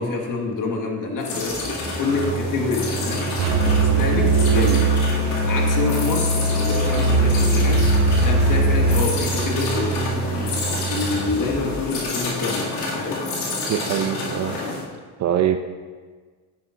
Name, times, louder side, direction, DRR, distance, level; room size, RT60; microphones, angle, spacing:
voice 1, 0.0-10.6 10.9-13.2, left 3 dB, 45° left, 1 dB, 1.8 m, -27 dB
sound 1, 1.2-14.8, left 2 dB, 65° left, 2.3 m, -29 dB
Telephone, 1.4-5.4 6.6-12.3, right 5 dB, ahead, 0.7 m, -30 dB
Musical instrument, 3.4-9.1, right 2 dB, 55° right, 1.2 m, -19 dB
voice 2, 13.7-14.7 15.2-15.6, right 10 dB, 40° right, 8 dB, 0.5 m, -23 dB
9.9 x 9.0 x 2.5 m, 1.5 s
supercardioid pair, 75°, 45 cm